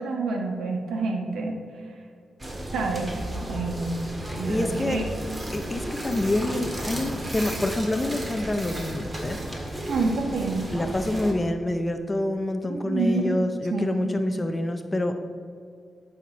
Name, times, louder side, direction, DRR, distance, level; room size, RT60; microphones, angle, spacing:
voice 1, 0.0-1.6 2.7-3.1 3.5-4.0 4.4-5.0 9.9-10.7 12.7-13.4 13.7-14.1, right 3 dB, 85° right, 2 dB, 1.5 m, -28 dB
sound 1, 2.4-11.3, right 1 dB, 25° right, 1.9 m, -33 dB
voice 2, 4.3-5.0 5.5-9.4 10.7-15.1, left 1 dB, 20° left, 7 dB, 0.7 m, -27 dB
11.0 x 5.9 x 5.4 m, 2.3 s
cardioid pair, 95°, 0 cm